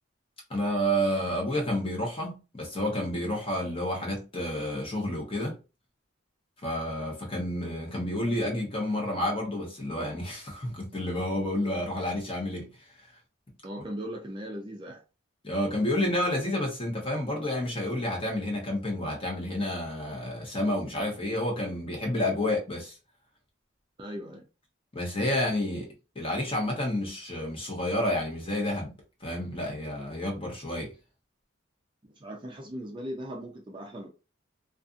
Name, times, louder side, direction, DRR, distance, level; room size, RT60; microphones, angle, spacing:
voice 1, 0.5-5.6 6.6-13.1 15.4-22.9 24.9-28.9 29.2-30.9, left 1 dB, 30° left, 0.9 m, -30 dB
voice 2, 13.6-15.0 24.0-24.5 32.0-34.1, equal, 25° right, 0.4 m, -38 dB
2.5 x 2.4 x 2.4 m
head